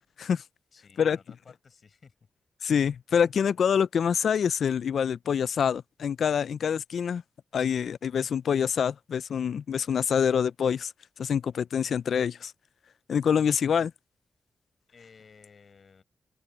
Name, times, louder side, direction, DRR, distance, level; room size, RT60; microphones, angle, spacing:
voice 1, 0.7-2.1 14.9-16.0, left 5 dB, 55° left, 5.7 m, -55 dB
voice 2, 2.6-7.2 7.5-10.9 11.2-12.5 13.1-13.9, left 7 dB, 75° left, 0.3 m, -26 dB
cardioid pair, 75°, 0 cm